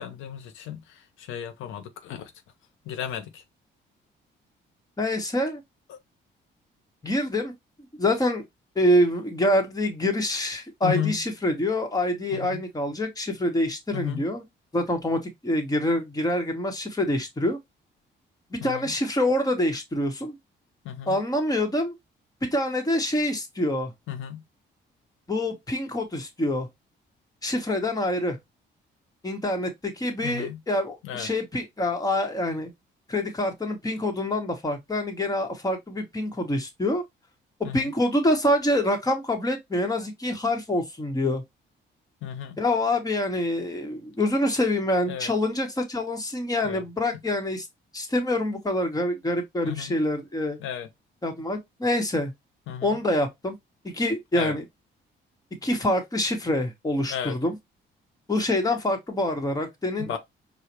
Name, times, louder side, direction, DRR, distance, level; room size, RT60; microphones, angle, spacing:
voice 1, 0.0-2.3 2.9-3.4 5.9-6.0 10.8-11.1 12.3-12.6 13.9-14.3 18.6-18.9 20.8-21.2 24.1-24.4 30.2-30.6 31.0-31.3 37.6-37.9 42.2-42.6 45.1-45.3 46.6-46.8 49.6-50.0 50.6-50.9 52.7-53.0 54.3-54.6 57.1-57.4 60.0-60.2, left 10 dB, 90° left, 0.6 m, -34 dB
voice 2, 5.0-5.6 7.0-7.5 8.0-8.4 8.7-14.4 14.7-17.6 18.5-20.4 21.1-21.9 22.4-23.9 25.3-26.7 27.4-28.4 29.2-32.7 33.1-37.0 37.7-41.4 42.6-47.7 47.9-50.6 51.2-52.3 52.8-53.5 53.8-54.6 55.6-57.5 58.3-60.2, left 1 dB, 20° left, 1.2 m, -26 dB
4.8 x 2.3 x 2.9 m
cardioid pair, 90°, 20 cm